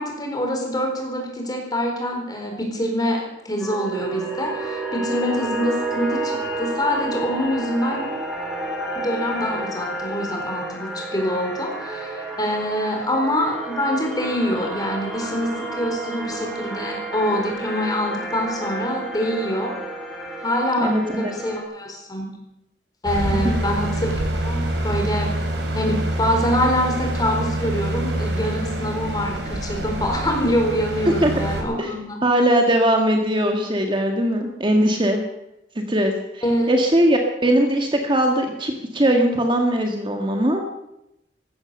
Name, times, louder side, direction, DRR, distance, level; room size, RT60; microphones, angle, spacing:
voice 1, 0.0-8.1 8.9-19.7 20.4-22.3 23.0-25.3 25.7-32.2 36.4-36.7, equal, 20° left, 1 dB, 4.2 m, -25 dB
sound 1, 3.6-21.6, right 2 dB, ahead, 3.7 m, -30 dB
voice 2, 20.8-21.3 23.3-23.6 31.2-31.3 31.8-31.9 32.2-35.2 35.7-40.6, right 1 dB, 25° right, 3 dB, 1.7 m, -20 dB
sound 2, 23.0-31.6, right 1 dB, 65° right, 3.6 m, -26 dB
15.5 x 13.5 x 7.0 m, 0.86 s
head